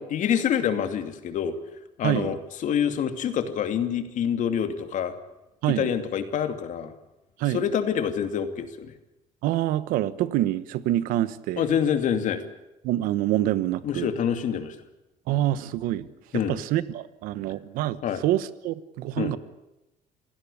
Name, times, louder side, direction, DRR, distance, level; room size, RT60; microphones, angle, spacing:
voice 1, 0.0-1.6 2.0-5.1 5.7-6.9 7.5-8.9 11.6-12.4 13.8-14.8 16.3-16.6 18.0-18.2 19.2-19.3, left 8 dB, 65° left, 7 dB, 2.7 m, -26 dB
voice 2, 9.4-11.7 12.8-14.1 15.3-16.1 16.3-19.4, right 13 dB, 90° right, 15 dB, 1.1 m, -26 dB
28.5 x 16.5 x 8.6 m, 0.95 s
cardioid pair, 110°, 14 cm